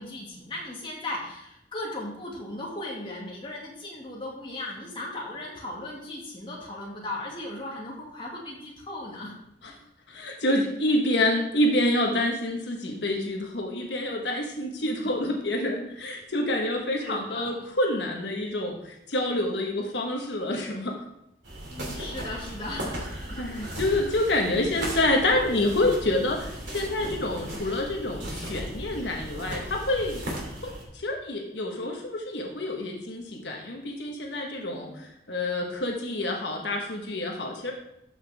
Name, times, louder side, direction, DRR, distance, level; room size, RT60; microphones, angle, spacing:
voice 1, 0.0-9.3 14.6-15.2 17.0-17.7 21.7-23.4 26.7-27.0 34.6-35.1, left 1 dB, 30° left, -3 dB, 2.2 m, -37 dB
voice 2, 10.1-21.0 23.4-30.2 30.6-37.7, left 1 dB, 85° left, 1 dB, 1.3 m, -27 dB
sound 1, 21.4-30.8, right 1 dB, 85° right, 2.9 m, -37 dB
12.5 x 6.0 x 3.5 m, 0.80 s
head